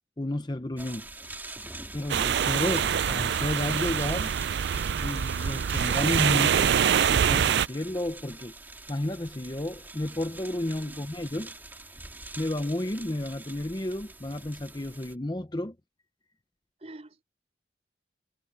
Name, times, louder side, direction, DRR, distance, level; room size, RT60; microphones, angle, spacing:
voice 1, 0.2-1.1 1.9-4.3 5.0-6.8 7.1-8.5 8.9-11.5 12.4-15.8, left 1 dB, 25° left, 0.8 m, -32 dB
sound 1, 0.8-15.2, right 2 dB, 10° right, 3.0 m, -44 dB
sound 2, 2.1-7.7, right 8 dB, 70° right, 0.4 m, -25 dB
voice 2, 10.8-11.4 16.8-17.2, right 1 dB, 35° right, 3.9 m, -48 dB
head